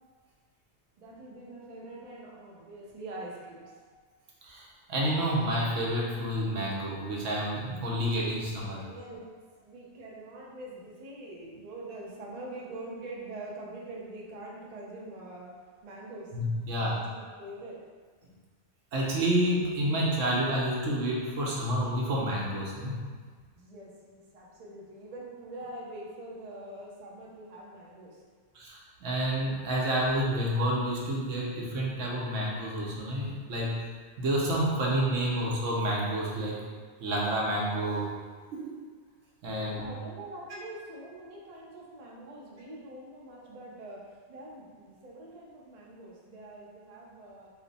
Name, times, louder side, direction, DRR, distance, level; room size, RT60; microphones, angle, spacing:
voice 1, 1.0-3.7 8.4-8.5 8.8-9.3 9.6-15.5 15.8-16.3 16.8-17.8 23.5-28.2 39.4-47.5, right 1 dB, 45° right, -4 dB, 0.5 m, -44 dB
voice 2, 4.4-8.8 16.3-16.9 18.9-23.0 28.5-33.9 34.2-36.6 37.0-38.1 38.5-38.8 39.4-39.9, right 1 dB, 80° right, -4 dB, 1.1 m, -29 dB
3.1 x 2.1 x 3.9 m, 1.5 s
omnidirectional pair, 1.3 m